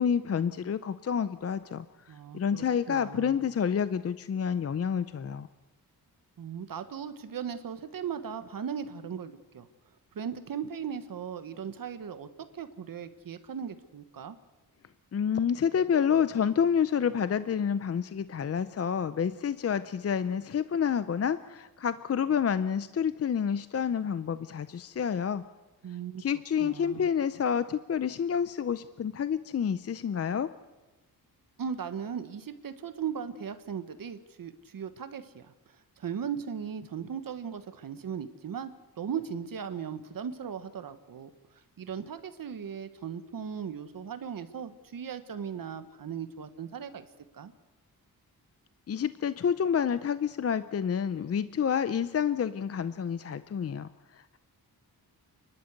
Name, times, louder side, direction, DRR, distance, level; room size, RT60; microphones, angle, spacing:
voice 1, 0.0-5.5 15.1-25.4 26.2-30.5 48.9-54.4, left 7 dB, 40° left, 14 dB, 0.6 m, -29 dB
voice 2, 2.1-3.4 6.4-9.7 10.1-12.3 12.5-14.4 25.8-26.2 26.6-27.1 31.6-41.3 41.8-47.0 47.3-47.5, right 7 dB, 65° right, 10 dB, 1.3 m, -38 dB
29.0 x 12.0 x 8.1 m, 1.2 s
wide cardioid pair, 135°, 37 cm